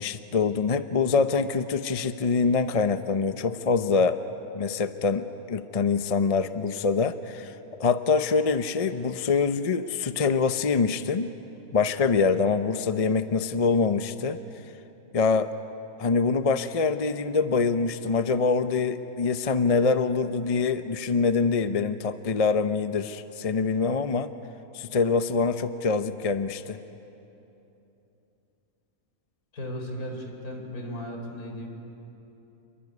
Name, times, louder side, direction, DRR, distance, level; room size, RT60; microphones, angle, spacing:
voice 1, 0.0-4.2 4.5-11.3 11.7-14.4 15.1-15.6 16.0-24.3 24.7-26.8, left 4 dB, 40° left, 10 dB, 0.5 m, -25 dB
voice 2, 29.5-31.7, equal, 80° left, 2 dB, 4.5 m, -36 dB
28.5 x 21.5 x 9.6 m, 3.0 s
omnidirectional pair, 1.5 m